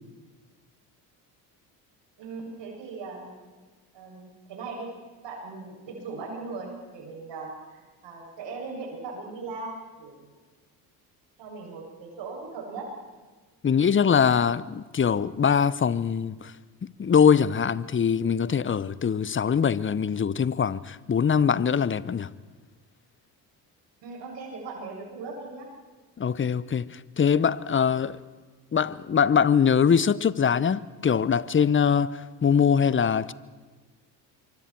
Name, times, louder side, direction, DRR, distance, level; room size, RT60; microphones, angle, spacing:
voice 1, 2.2-3.3 3.9-4.9 5.2-10.3 11.4-12.9 24.0-25.7, right 4 dB, 65° right, 7.7 m, -39 dB
voice 2, 13.6-16.5 16.8-22.3 26.2-28.2 28.7-33.3, left 7 dB, 25° left, 0.9 m, -23 dB
25.0 x 25.0 x 4.6 m
hypercardioid pair, 60°, 47 cm